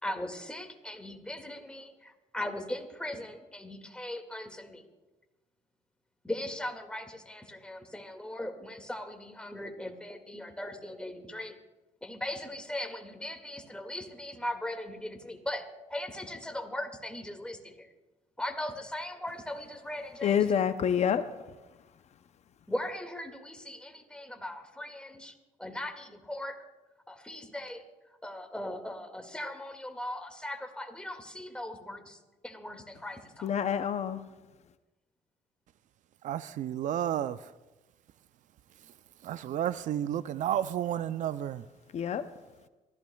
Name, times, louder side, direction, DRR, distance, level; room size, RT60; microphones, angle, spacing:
voice 1, 0.0-4.8 6.2-11.5 12.0-17.9 18.4-20.6 22.7-26.6 27.1-27.8 28.2-32.2 32.4-33.8, left 1 dB, 5° left, 2.1 m, -39 dB
voice 2, 20.2-21.2 33.4-34.2 41.9-42.2, left 8 dB, 55° left, 0.6 m, -27 dB
voice 3, 36.2-37.4 39.2-41.6, right 11 dB, 65° right, 0.4 m, -31 dB
27.0 x 15.0 x 2.3 m
cardioid pair, 85°, 14 cm